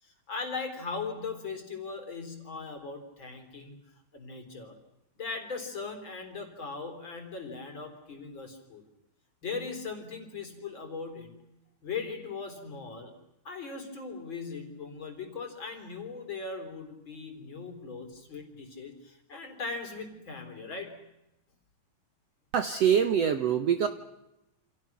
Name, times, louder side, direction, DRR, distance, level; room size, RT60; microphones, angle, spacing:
voice 1, 0.0-3.8 4.1-4.8 5.2-8.8 9.4-11.4 11.8-13.1 13.4-20.9, left 4 dB, 30° left, 5 dB, 4.2 m, -39 dB
voice 2, 22.5-23.9, right 8 dB, 85° right, 9 dB, 1.4 m, -24 dB
29.0 x 27.5 x 6.1 m, 0.91 s
omnidirectional pair, 4.5 m